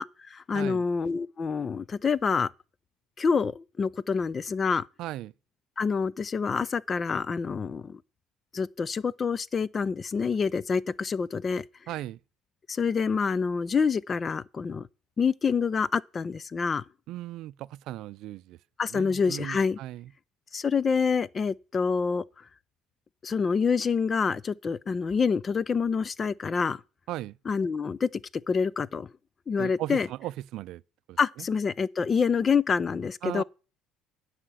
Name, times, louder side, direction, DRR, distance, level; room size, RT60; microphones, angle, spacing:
voice 1, 0.0-2.5 3.2-4.9 5.8-8.0 8.5-11.6 12.7-14.9 15.2-16.8 18.8-19.8 20.5-22.2 23.2-26.8 27.5-28.1 28.5-29.1 29.5-30.1 31.2-33.4, left 5 dB, 30° left, 0.5 m, -27 dB
voice 2, 0.5-0.8 5.0-5.3 11.9-12.2 17.1-18.6 18.9-20.1 27.1-27.4 29.6-30.8 31.1-31.5 33.2-33.4, right 15 dB, 70° right, 0.4 m, -37 dB
9.9 x 5.7 x 7.7 m
cardioid pair, 110°, 0 cm